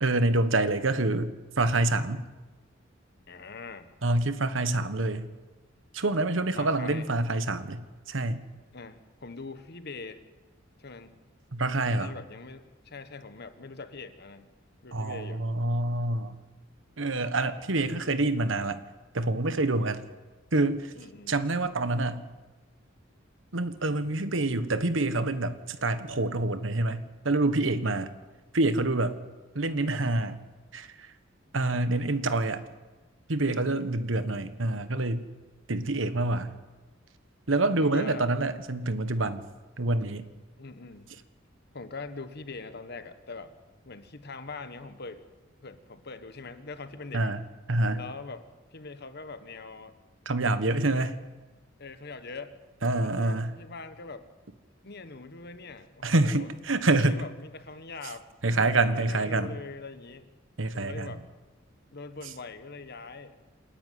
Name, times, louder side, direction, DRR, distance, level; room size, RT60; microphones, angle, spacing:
voice 1, 0.0-2.2 4.0-5.3 5.9-8.4 11.5-12.1 14.9-16.4 17.0-18.8 19.1-20.0 20.5-20.9 21.3-22.3 23.5-28.1 28.5-29.2 29.5-30.4 30.7-31.1 31.5-32.6 33.3-35.3 35.7-36.5 37.5-39.4 39.8-40.3 47.1-47.4 47.7-48.0 50.2-51.2 52.8-53.5 56.0-57.2 58.4-59.5 60.6-61.1, right 2 dB, 70° right, 12 dB, 1.3 m, -27 dB
voice 2, 3.3-3.9 6.6-7.1 8.7-10.2 10.8-11.2 11.8-14.5 14.8-15.4 20.9-21.5 33.5-33.7 37.8-38.3 40.6-41.2 41.7-43.5 43.8-45.3 45.6-47.3 47.9-49.9 51.8-52.6 53.0-54.3 54.8-56.5 56.9-60.3 60.7-61.2 61.9-63.3, left 3 dB, 55° left, 10 dB, 1.4 m, -43 dB
28.0 x 10.5 x 9.5 m, 1.2 s
head